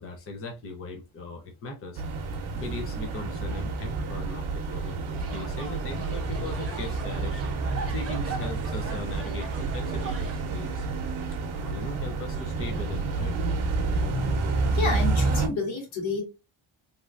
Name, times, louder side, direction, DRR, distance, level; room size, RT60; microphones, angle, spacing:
voice 1, 0.0-2.0 2.5-7.5 7.9-10.8 11.2-13.4, left 2 dB, 25° left, 1 dB, 0.6 m, -39 dB
sound 1, 1.9-15.5, right 3 dB, 75° right, 0.8 m, -29 dB
sound 2, 5.1-10.4, right 3 dB, 30° right, 0.8 m, -40 dB
voice 2, 14.7-16.2, left 3 dB, 70° left, 0 dB, 1.7 m, -29 dB
3.3 x 2.8 x 2.4 m, 0.28 s
wide cardioid pair, 175°, 50 cm